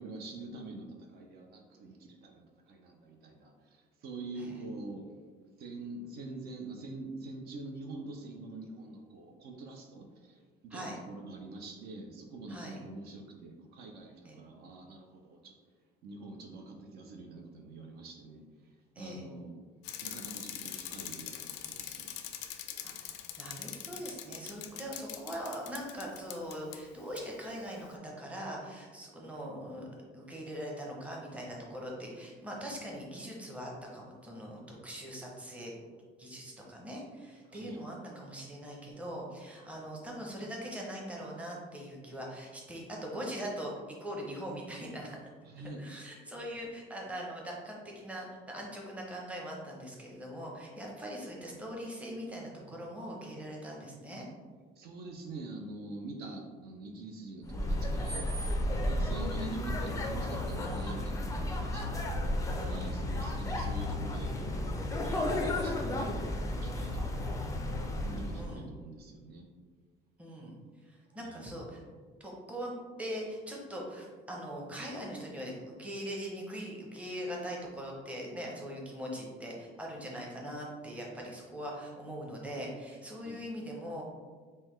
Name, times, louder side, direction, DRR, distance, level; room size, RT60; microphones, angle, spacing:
voice 1, 0.0-5.1 5.6-15.5 16.0-18.4 19.0-19.5 20.0-22.1 37.5-37.8 45.5-45.8 52.7-52.8 54.8-58.3 58.8-66.3 66.6-67.7 68.0-69.5 71.2-71.4 83.2-83.4, right 2 dB, 60° right, 2 dB, 0.6 m, -45 dB
Bicycle, 19.8-26.8 27.2-27.3, left 11 dB, 90° left, 0.4 m, -43 dB
voice 2, 22.8-29.9 30.1-35.8 36.2-43.7 44.0-45.2 45.6-54.2 58.7-59.0 62.5-62.9 68.3-68.7 70.2-70.6 70.9-71.8 72.2-84.0, equal, 5° right, -2 dB, 0.7 m, -41 dB
sound 1, 57.4-68.6, left 1 dB, 20° left, 0.4 m, -33 dB
5.4 x 2.2 x 3.1 m, 1.5 s
cardioid pair, 140°, 18 cm